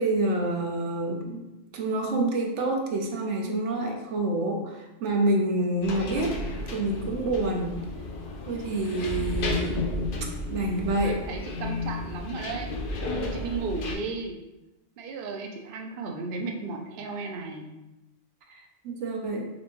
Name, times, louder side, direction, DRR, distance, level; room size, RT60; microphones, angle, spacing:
voice 1, 0.0-1.4 1.7-6.4 6.7-7.8 8.5-9.8 10.5-11.2 18.8-19.5, right 2 dB, 85° right, 2 dB, 1.0 m, -27 dB
sound 1, 5.8-13.9, left 2 dB, 55° left, 0.7 m, -33 dB
voice 2, 10.9-12.7 13.2-14.4 15.0-17.7, right 4 dB, 60° right, 2 dB, 0.7 m, -34 dB
4.1 x 3.3 x 3.0 m, 1.0 s
omnidirectional pair, 1.2 m